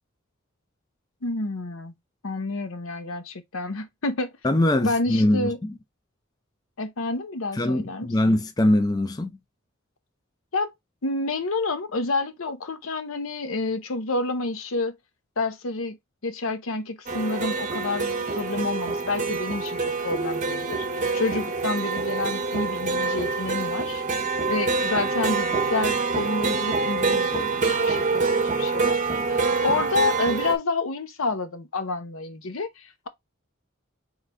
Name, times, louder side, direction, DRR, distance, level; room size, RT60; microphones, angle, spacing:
voice 1, 1.2-1.9 2.2-4.3 4.8-5.6 6.8-8.4 10.5-10.7 11.0-15.0 15.4-16.0 16.2-24.0 24.5-29.0 29.3-33.1, left 3 dB, 80° left, 0.8 m, -29 dB
voice 2, 4.4-5.7 7.5-9.3, left 1 dB, 20° left, 0.4 m, -22 dB
sound 1, 17.1-30.6, right 4 dB, 35° right, 0.7 m, -26 dB
3.8 x 3.2 x 3.3 m
head